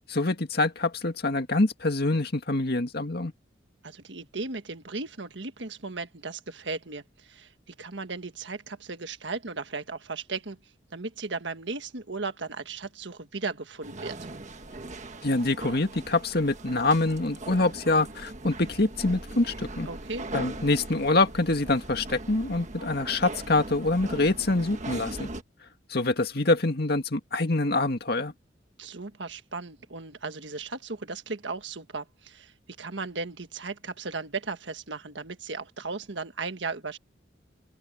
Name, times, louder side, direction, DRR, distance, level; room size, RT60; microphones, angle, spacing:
voice 1, 0.1-3.3 15.2-19.9 20.3-25.3 25.9-28.3, left 2 dB, 55° left, 2.1 m, -25 dB
voice 2, 3.8-10.6 10.9-14.1 19.8-20.3 28.8-37.0, right 4 dB, 70° right, 1.6 m, -36 dB
sound 1, 13.8-25.4, right 2 dB, 40° right, 1.5 m, -40 dB
open air
head